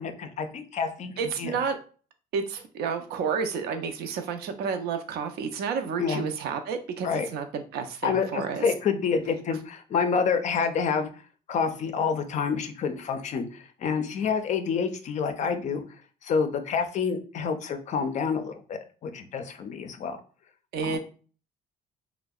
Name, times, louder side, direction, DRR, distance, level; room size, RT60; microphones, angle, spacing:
voice 1, 0.0-1.1 1.4-1.5 6.0-6.2 7.0-7.3 8.0-11.1 11.5-15.8 16.2-20.2 20.8-21.0, left 6 dB, 45° left, 7 dB, 0.4 m, -28 dB
voice 2, 1.2-1.8 2.3-8.7 20.7-21.0, right 6 dB, 70° right, 7 dB, 0.4 m, -30 dB
2.6 x 2.0 x 2.3 m, 0.39 s
cardioid pair, 110°, 17 cm